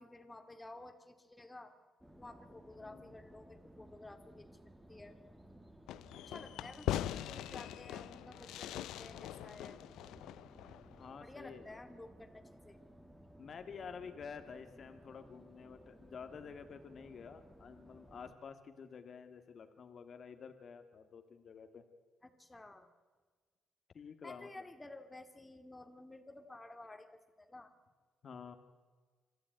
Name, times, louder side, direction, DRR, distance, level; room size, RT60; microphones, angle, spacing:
voice 1, 0.0-1.7 2.2-4.5 4.9-5.2 6.3-9.8 11.2-12.8 22.2-22.9 24.2-27.7, left 2 dB, 15° left, 8 dB, 2.4 m, -53 dB
sound 1, 2.0-18.4, right 1 dB, 10° right, 2.5 m, -59 dB
voice 2, 2.8-3.1 11.0-11.8 13.4-21.8 23.9-24.5 28.2-28.6, left 6 dB, 50° left, 8 dB, 1.9 m, -50 dB
Fireworks, 5.9-11.1, left 13 dB, 90° left, 0.5 m, -42 dB
26.5 x 14.0 x 9.2 m, 1.5 s
cardioid pair, 90°, 0 cm